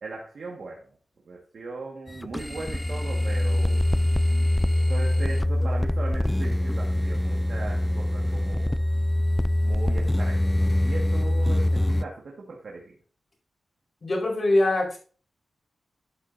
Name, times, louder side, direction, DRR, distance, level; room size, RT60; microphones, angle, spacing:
voice 1, 0.0-0.9 1.3-3.8 4.9-8.8 9.6-10.5 10.8-13.0, right 3 dB, 65° right, -2 dB, 1.7 m, -38 dB
sound 1, 2.1-12.0, left 1 dB, 10° left, 0.3 m, -24 dB
voice 2, 14.0-15.0, left 1 dB, 45° left, -1 dB, 4.7 m, -23 dB
12.0 x 7.7 x 2.7 m, 0.40 s
wide cardioid pair, 100°, 0 cm